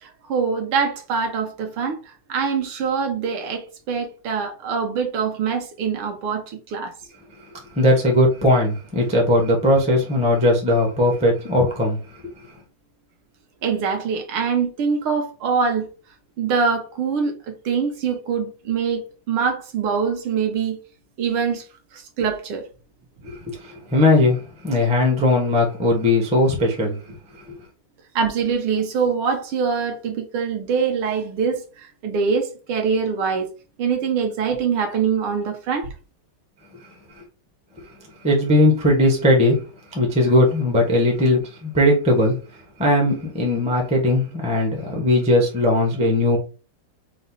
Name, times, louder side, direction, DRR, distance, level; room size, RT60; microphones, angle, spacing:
voice 1, 0.0-2.0 2.3-6.9 13.6-15.9 16.4-20.8 21.2-21.7 21.9-22.6 28.2-33.5 33.8-35.9, right 6 dB, 75° right, 1.8 m, -24 dB
voice 2, 7.7-12.0 12.4-12.5 23.2-27.0 27.3-27.6 38.2-39.6 39.9-42.4 42.8-46.4, left 1 dB, 10° right, 0.3 m, -19 dB
5.1 x 2.0 x 4.0 m
omnidirectional pair, 2.4 m